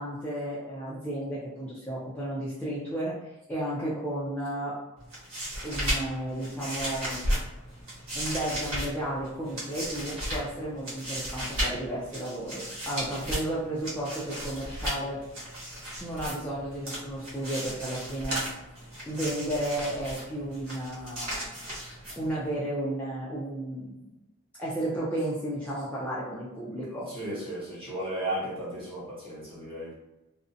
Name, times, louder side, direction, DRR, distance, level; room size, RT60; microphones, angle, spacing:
voice 1, 0.0-4.8 5.6-7.3 8.1-15.2 16.0-18.4 19.1-21.5 22.2-24.1 24.6-27.2, right 1 dB, 5° left, -8 dB, 0.4 m, -33 dB
sound 1, 5.0-22.6, equal, 90° right, 1.2 m, -35 dB
voice 2, 27.1-30.0, right 1 dB, 25° right, -7 dB, 0.9 m, -34 dB
2.5 x 2.1 x 2.4 m, 1.0 s
head